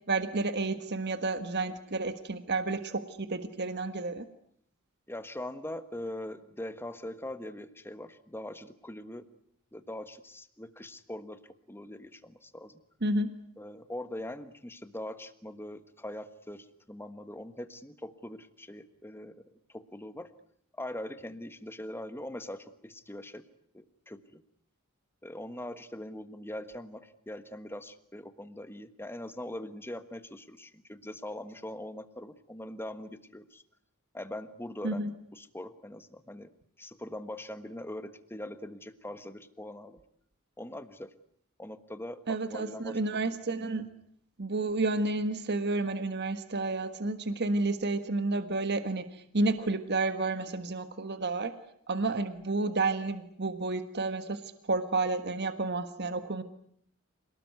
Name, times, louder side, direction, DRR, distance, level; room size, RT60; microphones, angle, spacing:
voice 1, 0.1-4.3 13.0-13.4 34.8-35.1 42.3-43.9 44.4-51.5 51.9-56.4, right 3 dB, 50° right, 10 dB, 1.5 m, -31 dB
voice 2, 5.1-9.3 9.7-11.4 11.7-12.8 13.6-19.3 19.7-20.3 20.7-23.4 23.7-24.2 25.2-33.6 34.1-36.5 36.8-40.0 40.6-41.1 41.6-43.2, left 1 dB, 10° left, 11 dB, 1.4 m, -42 dB
27.0 x 19.0 x 9.4 m, 0.67 s
head